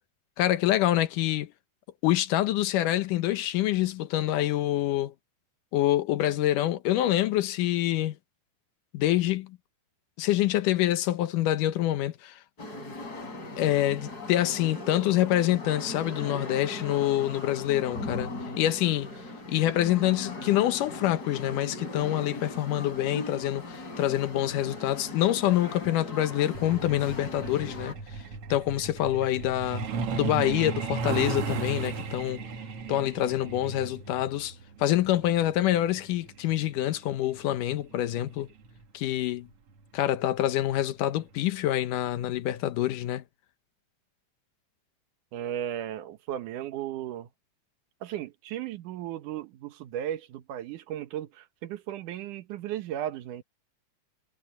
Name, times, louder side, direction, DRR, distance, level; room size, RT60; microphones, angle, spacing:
voice 1, 0.4-1.5 2.0-5.1 5.7-8.2 8.9-9.6 10.2-12.3 13.6-19.1 19.5-28.0 28.5-29.9 30.1-32.4 32.9-34.5 34.8-38.5 38.9-39.5 39.9-43.2, left 13 dB, 85° left, 2.6 m, -26 dB
sound 1, 12.6-27.9, left 2 dB, 30° left, 4.2 m, -39 dB
Truck, 26.5-38.8 40.1-40.2 40.6-40.8 41.2-41.5 41.8-41.9 42.4-42.5, right 5 dB, 55° right, 2.3 m, -35 dB
voice 2, 45.3-47.3 48.0-53.4, right 11 dB, 80° right, 2.7 m, -35 dB
omnidirectional pair, 3.6 m